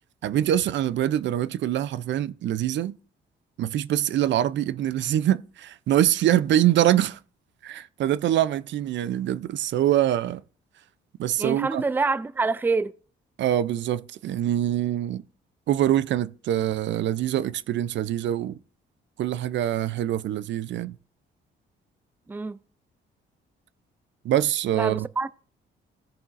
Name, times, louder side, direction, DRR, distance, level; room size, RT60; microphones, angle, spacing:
voice 1, 0.2-3.0 3.6-7.2 7.6-10.4 11.2-11.8 13.4-15.2 15.7-18.6 19.2-21.0 24.2-25.1, right 12 dB, 65° right, 0.5 m, -24 dB
voice 2, 11.4-12.9 22.3-22.6 24.7-25.3, right 3 dB, 10° right, 0.4 m, -26 dB
16.5 x 6.9 x 2.5 m
cardioid pair, 90°, 20 cm